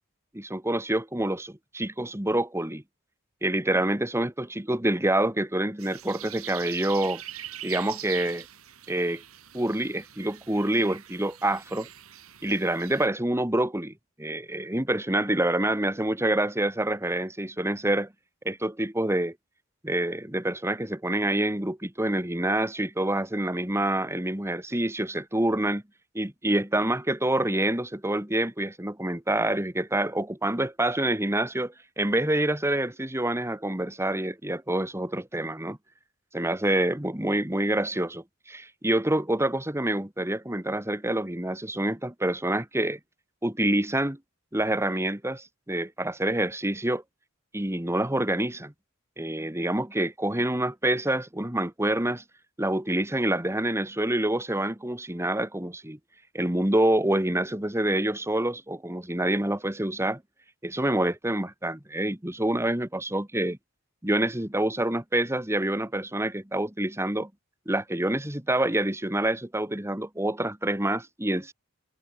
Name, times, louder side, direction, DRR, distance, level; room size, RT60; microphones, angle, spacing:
voice 1, 0.3-2.8 3.4-7.2 7.6-8.4 8.9-9.2 9.5-11.9 12.4-18.1 18.4-19.3 19.8-25.8 26.1-35.8 36.3-43.0 43.4-44.2 44.5-47.0 47.5-48.7 49.2-52.2 52.6-56.0 56.3-60.2 60.6-63.6 64.0-67.3 67.7-71.5, right 1 dB, 10° right, 2.1 m, -27 dB
sound 1, 5.8-13.1, right 12 dB, 75° right, 4.7 m, -43 dB
head